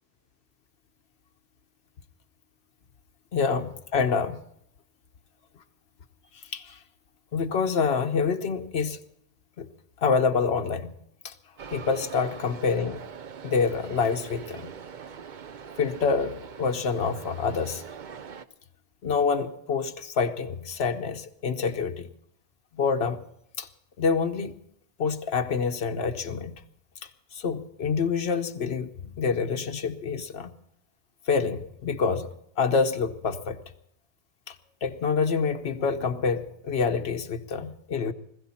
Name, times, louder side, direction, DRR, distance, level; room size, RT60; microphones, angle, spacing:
voice 1, 3.3-4.4 6.5-6.8 7.3-9.0 9.6-9.7 10.0-10.9 11.2-11.3 11.7-13.1 13.4-14.7 15.8-17.8 19.0-22.1 22.7-23.2 23.6-23.7 24.0-24.5 25.0-26.5 27.0-28.9 29.2-30.5 31.3-32.3 32.6-33.6 34.5-34.6 34.8-38.1, left 5 dB, 90° left, 1.1 m, -27 dB
sound 1, 11.6-18.4, right 7 dB, 55° right, 0.8 m, -43 dB
20.0 x 15.5 x 4.2 m
omnidirectional pair, 1.0 m